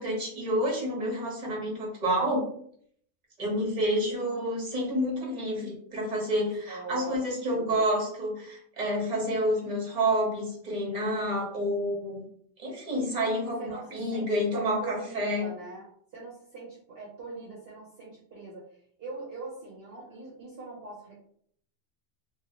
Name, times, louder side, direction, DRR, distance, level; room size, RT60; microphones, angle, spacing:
voice 1, 0.0-2.4 3.4-12.2 12.6-15.5, equal, 35° right, -2 dB, 1.2 m, -29 dB
voice 2, 6.4-7.8 13.6-15.9 16.1-18.7 19.0-21.2, right 2 dB, 55° right, -5 dB, 1.0 m, -42 dB
3.1 x 2.8 x 2.8 m, 0.63 s
omnidirectional pair, 1.3 m